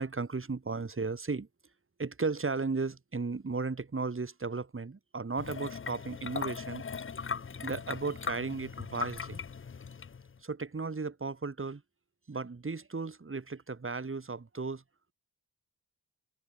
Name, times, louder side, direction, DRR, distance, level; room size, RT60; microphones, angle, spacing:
voice 1, 0.0-1.5 2.0-6.8 7.6-9.4 10.4-11.8 12.3-14.8, right 4 dB, 35° right, 2.0 m, -35 dB
sound 1, 5.4-10.4, left 6 dB, 35° left, 0.6 m, -39 dB
open air
wide cardioid pair, 105°, 38 cm